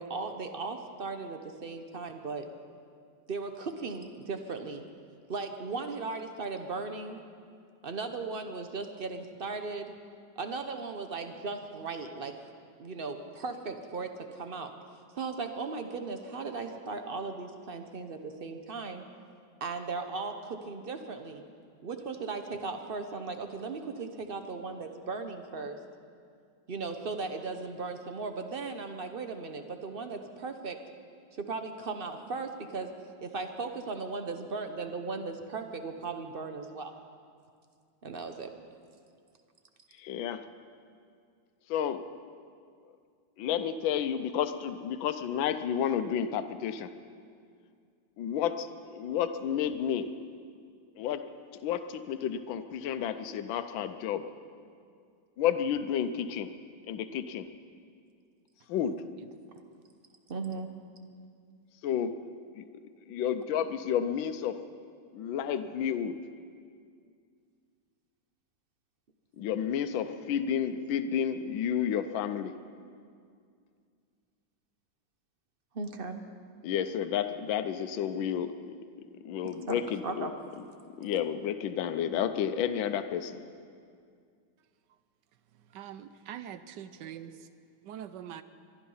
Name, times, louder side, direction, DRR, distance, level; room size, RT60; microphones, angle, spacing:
voice 1, 0.0-2.4 3.3-4.8 5.3-7.2 7.8-9.9 10.4-12.3 12.8-14.7 15.1-19.0 19.6-21.4 21.8-25.8 26.7-30.8 31.4-32.9 33.2-36.9 38.0-38.5 60.3-60.7 75.7-76.2 79.4-80.3, right 4 dB, 45° right, 6 dB, 0.7 m, -37 dB
voice 2, 40.0-40.4 41.7-42.0 43.4-46.9 48.2-50.1 51.0-51.2 51.6-54.3 55.4-56.5 56.9-57.5 58.7-59.0 61.8-62.1 62.5-62.6 63.1-64.6 65.1-66.2 69.4-72.5 76.6-78.7 79.2-80.3 81.0-83.4, left 9 dB, 80° left, 9 dB, 1.4 m, -31 dB
voice 3, 85.7-87.4 87.8-88.4, right 10 dB, 70° right, 12 dB, 1.2 m, -43 dB
22.5 x 11.5 x 5.6 m, 2.2 s
omnidirectional pair, 2.1 m